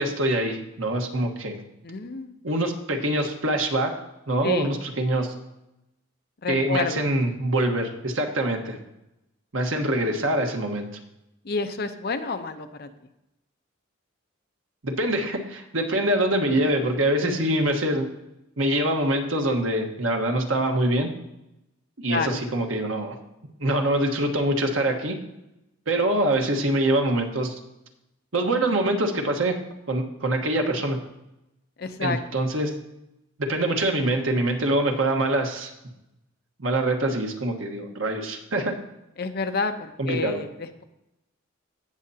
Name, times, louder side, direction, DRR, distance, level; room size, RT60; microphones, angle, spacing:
voice 1, 0.0-1.6 2.4-3.9 4.3-5.3 6.5-8.8 9.5-10.9 14.8-18.1 18.6-21.1 22.0-23.2 23.6-25.2 25.9-27.6 28.3-29.6 29.9-31.0 32.0-32.7 33.4-35.7 36.6-38.7 40.0-40.4, right 1 dB, 90° right, 3 dB, 1.3 m, -24 dB
voice 2, 1.8-2.4 4.4-4.7 6.4-7.1 11.4-12.9 17.2-17.5 22.1-22.4 31.8-32.2 39.2-40.8, left 4 dB, 55° left, 8 dB, 0.8 m, -29 dB
17.0 x 6.7 x 2.8 m, 0.90 s
head